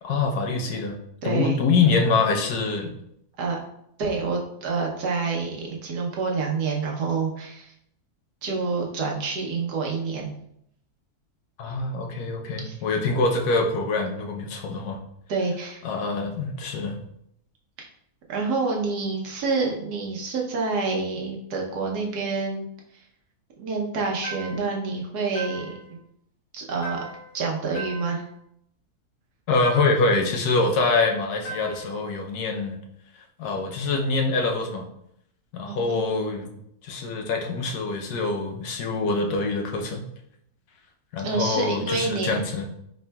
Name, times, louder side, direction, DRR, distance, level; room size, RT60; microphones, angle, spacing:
voice 1, 0.0-1.0 1.2-2.9 11.6-15.0 15.8-17.0 29.5-32.8 33.4-34.8 35.5-36.5 36.8-40.0 41.1-42.6, left 3 dB, 85° left, 2 dB, 1.2 m, -25 dB
voice 2, 1.2-1.6 3.4-3.6 4.0-7.7 8.4-10.3 12.6-12.7 15.3-15.8 18.3-22.7 22.9-23.0 23.6-25.7 26.5-27.0 27.3-28.2 35.7-36.0 41.2-42.4, right 4 dB, 85° right, 0 dB, 1.3 m, -27 dB
sound 1, 24.2-24.8 25.3-25.9 26.8-27.4 27.7-28.3 29.6-30.2 31.4-32.0, right 3 dB, 60° left, 1.8 m, -38 dB
4.3 x 3.6 x 2.2 m, 0.75 s
omnidirectional pair, 1.6 m